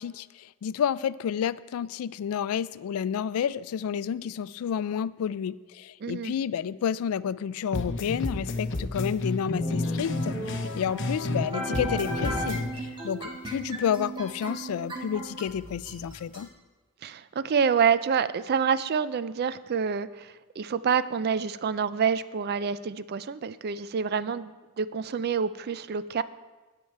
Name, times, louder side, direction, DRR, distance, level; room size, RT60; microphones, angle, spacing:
voice 1, 0.0-16.5, left 8 dB, 85° left, 18 dB, 0.3 m, -30 dB
voice 2, 6.0-6.3 17.0-26.2, right 6 dB, 50° right, 15 dB, 0.4 m, -27 dB
sound 1, 7.7-11.5 11.7-12.7, left 2 dB, 60° left, 0.8 m, -31 dB
sound 2, 9.6-16.4, equal, 20° right, 1.3 m, -36 dB
10.5 x 8.8 x 4.5 m, 1.2 s
head